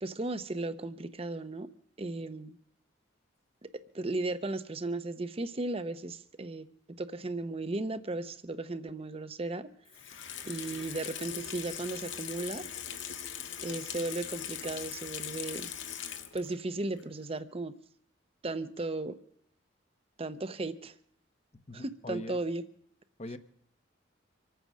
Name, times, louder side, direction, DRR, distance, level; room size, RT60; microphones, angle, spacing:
voice 1, 0.0-1.7 2.0-2.6 3.6-3.7 3.9-6.7 7.0-9.7 10.1-10.2 10.5-12.6 13.6-15.7 16.3-17.7 18.4-19.1 20.2-21.0 21.7-22.6, right 2 dB, 30° right, 11 dB, 0.7 m, -35 dB
Water tap faucet / Sink (filling or washing), 9.9-16.6 17.0-17.1, left 9 dB, 85° left, 1.4 m, -40 dB
voice 2, 21.7-22.4 23.2-23.4, left 1 dB, 35° left, 12 dB, 0.9 m, -41 dB
25.0 x 9.1 x 6.2 m, 0.66 s
head